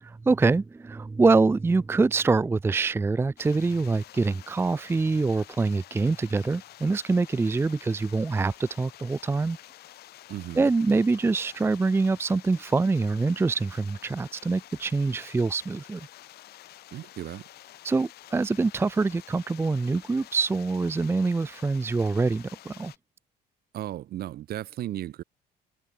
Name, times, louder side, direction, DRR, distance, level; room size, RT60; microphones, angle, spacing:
voice 1, 0.0-9.6 10.6-16.1 17.8-22.9, right 3 dB, 15° right, 0.5 m, -25 dB
sound 1, 3.4-23.0, left 14 dB, 70° left, 2.9 m, -49 dB
voice 2, 10.3-10.7 16.9-17.4 23.7-25.2, right 13 dB, 65° right, 2.3 m, -35 dB
cardioid pair, 110°, 17 cm